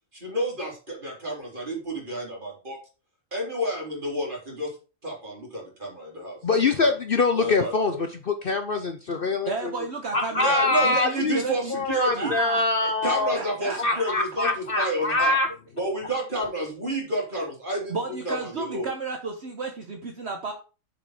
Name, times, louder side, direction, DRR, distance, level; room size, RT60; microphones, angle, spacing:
voice 1, 0.1-2.8 3.3-4.7 5.0-6.9 7.4-8.0 10.3-12.3 13.0-15.4 15.8-18.9, right 1 dB, 35° right, -2 dB, 3.8 m, -30 dB
voice 2, 6.4-7.9 8.3-9.5 10.1-11.4 11.7-13.4 13.8-15.5, left 3 dB, 50° left, 7 dB, 0.8 m, -24 dB
voice 3, 9.4-11.8 12.1-14.1 17.9-20.5, right 4 dB, 55° right, 3 dB, 1.4 m, -33 dB
7.3 x 5.3 x 5.8 m, 0.34 s
omnidirectional pair, 1.4 m